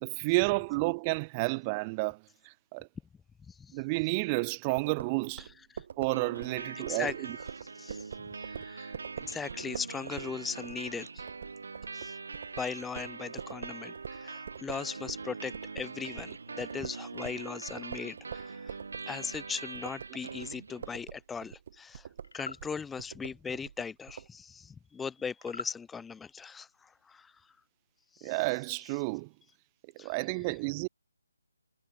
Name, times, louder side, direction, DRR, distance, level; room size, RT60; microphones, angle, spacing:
voice 1, 0.0-2.2 2.7-2.9 3.7-5.5 6.0-7.4 28.2-29.3 30.0-30.9, right 28 dB, 20° right, 0.4 m, -30 dB
sound 1, 4.8-15.3 15.5-24.3, right 8 dB, 40° right, 4.7 m, -45 dB
sound 2, 6.1-21.1, right 4 dB, 70° right, 6.1 m, -43 dB
voice 2, 7.8-8.1 8.4-11.2 11.9-12.1 12.6-18.8 19.1-22.1 22.3-27.3 28.2-28.4 30.0-30.1, left 6 dB, 5° left, 1.1 m, -39 dB
sound 3, 22.2-22.6 25.4-25.8, left 3 dB, 80° left, 2.1 m, -41 dB
hypercardioid pair, 165°, 0 cm